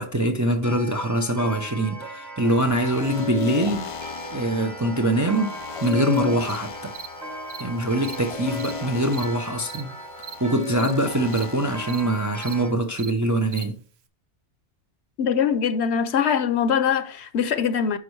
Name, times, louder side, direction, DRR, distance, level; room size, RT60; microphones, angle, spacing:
voice 1, 0.0-3.9 4.3-5.6 5.8-6.9 7.6-9.9 10.4-13.8, right 1 dB, 25° right, 0.5 m, -23 dB
Clock, 0.6-12.7, right 2 dB, 40° right, 2.0 m, -39 dB
sound 1, 2.4-12.3, left 6 dB, 45° left, 0.4 m, -34 dB
Cricket, 5.8-5.9 6.4-6.6 6.9-7.1 7.5-7.6 8.0-8.2 8.6-8.7 9.1-9.3 9.7-9.8 10.2-10.3 10.8-10.9 11.3-11.4 11.9-12.0 12.4-12.5 13.0-13.1 13.5-13.6, right 6 dB, 70° right, 1.0 m, -38 dB
voice 2, 15.2-18.0, left 7 dB, 70° left, 1.0 m, -22 dB
9.7 x 5.4 x 3.2 m
omnidirectional pair, 1.2 m